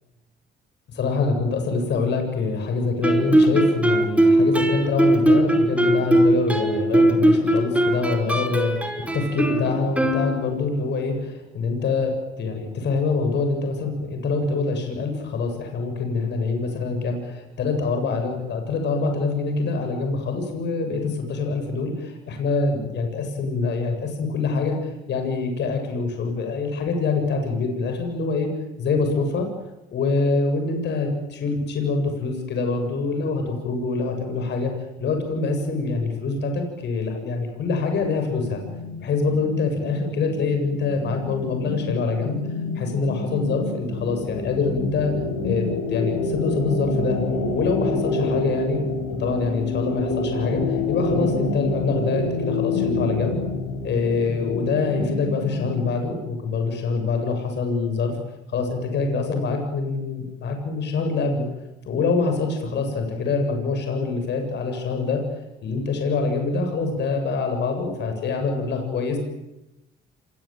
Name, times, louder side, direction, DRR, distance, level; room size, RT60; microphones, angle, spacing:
voice 1, 0.9-8.7 9.1-28.5 28.8-29.5 29.9-34.7 35.0-38.6 39.0-42.4 42.7-45.1 45.4-47.2 47.5-48.8 49.2-53.4 53.8-58.2 58.5-61.5 61.8-65.2 65.6-69.2, left 4 dB, 65° left, 5 dB, 7.7 m, -25 dB
Guitar, 3.0-10.7, right 1 dB, 5° right, 5.1 m, -20 dB
sound 1, 38.0-55.8, left 3 dB, 90° left, 6.9 m, -28 dB
27.5 x 23.5 x 9.2 m, 0.95 s
cardioid pair, 80°, 19 cm